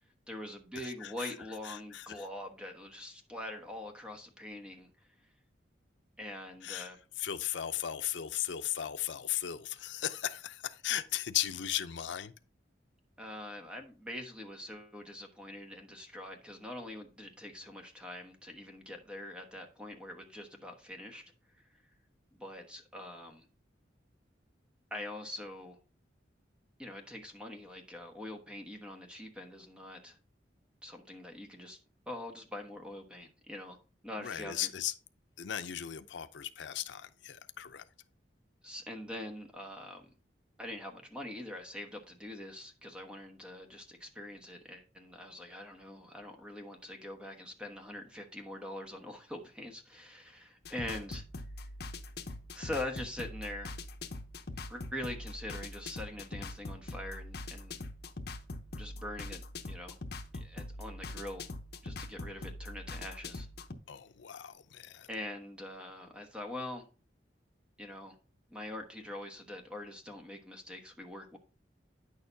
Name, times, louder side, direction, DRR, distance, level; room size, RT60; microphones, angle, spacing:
voice 1, 0.3-5.1 6.2-7.0 13.2-21.2 22.3-23.5 24.9-25.8 26.8-30.2 30.8-31.8 32.1-33.8 34.0-34.7 38.6-40.1 40.6-51.2 52.5-53.8 54.6-57.8 58.8-60.0 60.3-61.5 61.8-63.5 65.1-66.9 67.8-68.2 68.5-71.4, left 1 dB, 5° right, 1.3 m, -44 dB
voice 2, 1.0-1.3 1.6-2.1 6.6-6.9 7.2-12.3 34.2-34.9 35.4-37.8 63.9-65.1, left 11 dB, 80° left, 0.5 m, -36 dB
sound 1, 50.6-63.7, left 2 dB, 60° left, 0.9 m, -43 dB
9.5 x 6.5 x 2.7 m
head